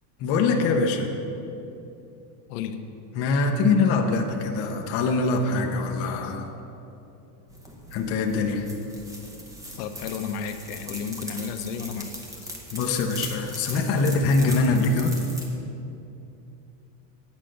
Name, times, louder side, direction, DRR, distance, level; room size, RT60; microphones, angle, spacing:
voice 1, 0.2-1.1 3.1-6.5 7.9-8.7 12.7-15.1, left 3 dB, 30° left, 2 dB, 0.6 m, -23 dB
voice 2, 2.5-2.9 6.2-6.3 9.8-12.5, left 6 dB, 65° left, 7 dB, 0.8 m, -33 dB
sound 1, 7.5-15.5, equal, 5° right, 0.7 m, -40 dB
8.6 x 5.2 x 7.6 m, 2.8 s
supercardioid pair, 155°, 50 cm